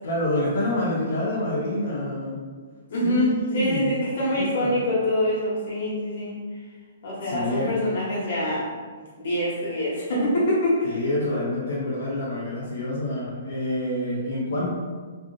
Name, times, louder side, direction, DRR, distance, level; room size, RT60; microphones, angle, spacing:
voice 1, 0.0-2.4 3.0-4.0 4.3-4.8 7.2-7.7 10.8-14.7, left 1 dB, 80° left, -8 dB, 0.9 m, -27 dB
voice 2, 2.9-6.4 7.0-8.7 9.2-11.0, left 1 dB, 60° left, -7 dB, 1.4 m, -25 dB
3.3 x 2.6 x 2.5 m, 1.5 s
hypercardioid pair, 160°, 0 cm